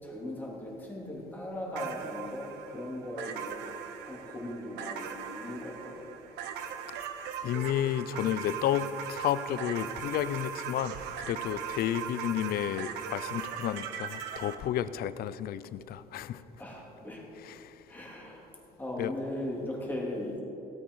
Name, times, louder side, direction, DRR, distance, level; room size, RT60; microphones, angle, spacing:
voice 1, 0.0-3.6 4.0-6.2 16.6-17.3 17.9-18.5 18.8-20.4, left 1 dB, 10° left, -3 dB, 3.1 m, -38 dB
sound 1, 1.7-14.6, right 8 dB, 90° right, 0.9 m, -39 dB
voice 2, 7.4-11.0 11.3-16.4 17.6-17.8 19.0-19.1, left 11 dB, 65° left, 16 dB, 0.5 m, -31 dB
17.0 x 8.6 x 4.8 m, 2.9 s
cardioid pair, 110°, 17 cm